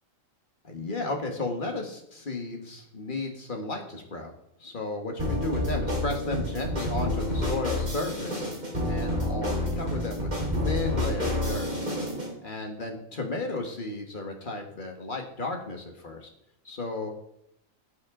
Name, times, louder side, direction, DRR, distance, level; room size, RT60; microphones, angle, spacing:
voice 1, 0.6-4.3 4.6-8.5 8.9-11.7 12.4-16.3 16.7-17.1, left 2 dB, 40° left, 3 dB, 1.8 m, -34 dB
sound 1, 5.2-12.3, left 1 dB, 30° right, 3.8 m, -29 dB
15.5 x 8.3 x 3.8 m, 0.77 s
omnidirectional pair, 1.4 m